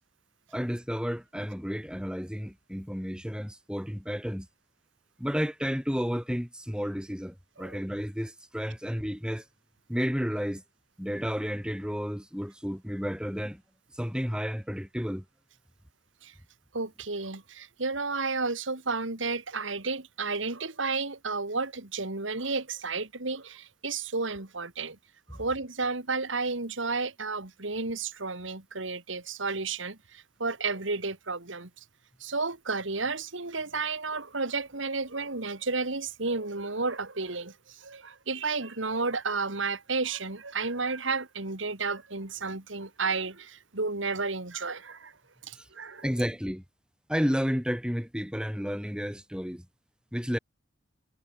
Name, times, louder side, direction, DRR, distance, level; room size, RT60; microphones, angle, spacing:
voice 1, 0.5-4.5 5.2-9.4 9.9-10.6 11.0-13.6 13.9-15.2 45.5-45.7 46.0-46.6 47.1-49.7 50.1-50.4, equal, 5° right, 6.3 m, -31 dB
voice 2, 16.7-25.0 25.3-31.7 32.2-45.1 45.4-46.1, right 4 dB, 80° right, 2.6 m, -32 dB
head